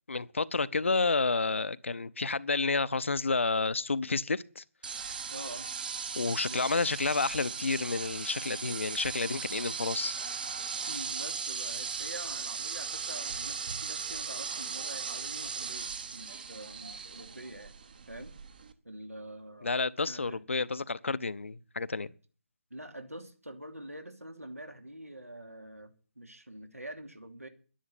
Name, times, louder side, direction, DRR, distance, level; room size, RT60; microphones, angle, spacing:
voice 1, 0.1-4.6 4.9-5.2 6.2-10.1 19.6-22.1, left 3 dB, 60° left, 0.7 m, -30 dB
sound 1, 4.8-18.7, right 5 dB, 35° right, 1.2 m, -38 dB
voice 2, 5.3-5.7 6.5-6.6 9.5-9.7 10.9-17.8 18.1-18.3 18.8-20.4 22.7-27.5, right 1 dB, 85° right, 2.9 m, -46 dB
11.0 x 10.0 x 8.2 m
figure-of-eight pair, 155°, 8 cm